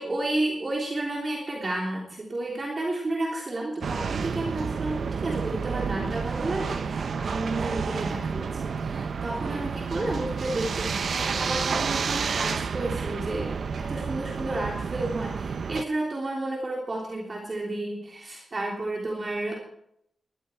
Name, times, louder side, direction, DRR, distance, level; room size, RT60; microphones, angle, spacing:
voice 1, 0.0-19.5, right 2 dB, 35° right, -2 dB, 3.4 m, -31 dB
sound 1, 3.8-15.8, right 5 dB, 60° right, 0.7 m, -30 dB
19.5 x 14.0 x 4.6 m, 0.74 s
wide cardioid pair, 150°, 0 cm